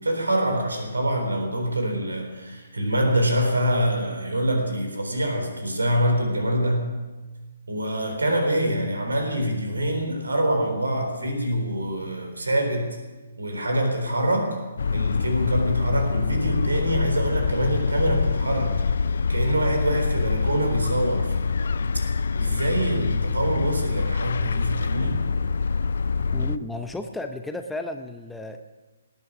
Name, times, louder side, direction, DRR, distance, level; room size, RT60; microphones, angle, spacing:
voice 1, 0.0-6.9 7.7-13.0 13.4-14.6 14.9-18.8 19.3-21.7 22.3-25.2, right 1 dB, 75° right, 4 dB, 3.7 m, -25 dB
sound 1, 14.8-26.6, left 4 dB, 60° left, 0.5 m, -25 dB
voice 2, 26.3-28.6, left 2 dB, 5° left, 6 dB, 0.7 m, -33 dB
18.5 x 9.7 x 6.1 m, 1.2 s
figure-of-eight pair, 135°, 0 cm